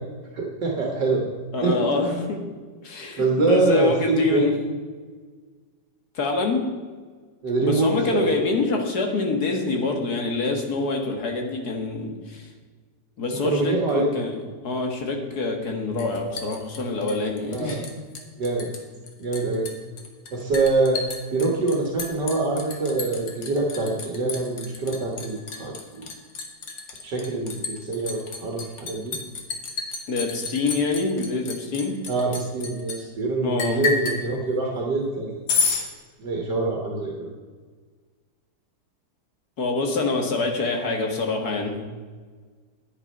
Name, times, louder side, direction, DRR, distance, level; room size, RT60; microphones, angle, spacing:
voice 1, 0.3-1.3 1.6-2.0 3.2-4.5 7.4-8.3 13.3-14.3 17.5-17.8 18.4-18.7 19.2-19.7 20.3-21.0 21.3-26.1 27.0-29.2 32.1-35.4 36.2-37.3, right 3 dB, 70° right, 0 dB, 2.1 m, -25 dB
voice 2, 1.5-2.4 2.8-4.5 6.1-6.7 7.6-12.5 13.2-14.4 14.6-17.9 30.1-32.0 33.4-33.8 39.6-41.8, left 3 dB, 60° left, 3 dB, 2.1 m, -25 dB
Liquid, 16.0-17.9 18.2-18.8 19.1-33.0 33.6-34.2 35.5-35.8, left 4 dB, 85° left, 2.2 m, -30 dB
11.0 x 9.7 x 5.4 m, 1.5 s
omnidirectional pair, 1.9 m